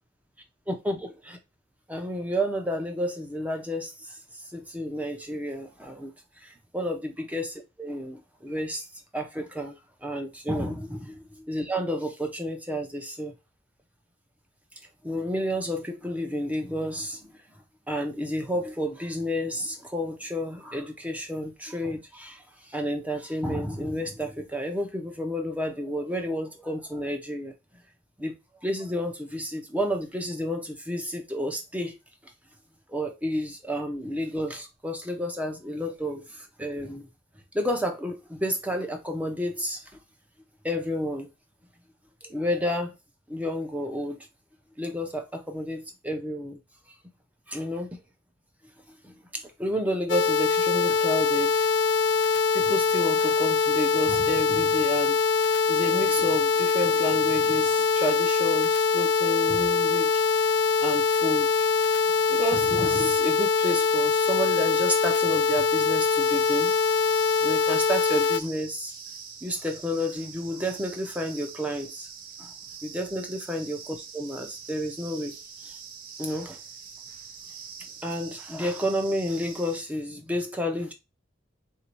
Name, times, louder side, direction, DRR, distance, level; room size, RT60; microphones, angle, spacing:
voice 1, 0.7-1.0 1.3-1.4 1.9-4.2 4.5-6.1 6.4-8.9 9.1-9.7 10.0-13.3 15.0-17.4 17.9-27.5 28.2-28.3 28.6-32.0 32.9-37.1 37.5-39.9 40.6-41.3 42.2-43.0 43.3-44.2 44.8-46.6 47.5-48.0 48.9-51.7 52.5-55.3 55.7-60.5 60.8-61.7 62.3-66.7 67.4-68.9 69.4-72.1 72.4-72.5 72.8-75.4 75.6-75.8 76.2-76.6 78.0-80.9, equal, 10° right, 0.8 m, -31 dB
sound 1, 50.1-68.4, left 5 dB, 85° left, 0.5 m, -23 dB
sound 2, 66.2-79.8, right 6 dB, 50° right, 0.8 m, -44 dB
3.9 x 2.8 x 4.5 m
head